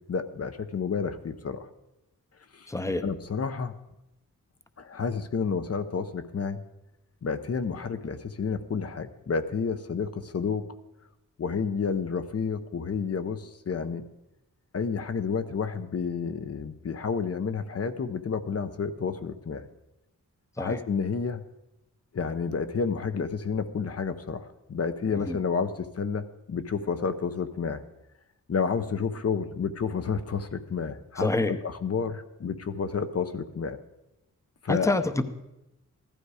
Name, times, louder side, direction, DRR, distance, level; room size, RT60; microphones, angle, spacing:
voice 1, 0.1-1.7 2.6-2.7 3.0-3.7 4.8-6.6 7.2-10.6 11.4-14.0 14.7-19.6 20.6-21.4 22.1-27.8 28.5-33.8 34.6-34.9, left 5 dB, 50° left, 10 dB, 0.8 m, -30 dB
voice 2, 2.7-3.0 20.6-20.8 25.1-25.4 31.2-31.5 34.7-35.2, left 2 dB, 10° left, 10 dB, 0.7 m, -27 dB
15.5 x 12.0 x 4.9 m, 0.91 s
wide cardioid pair, 165°, 32 cm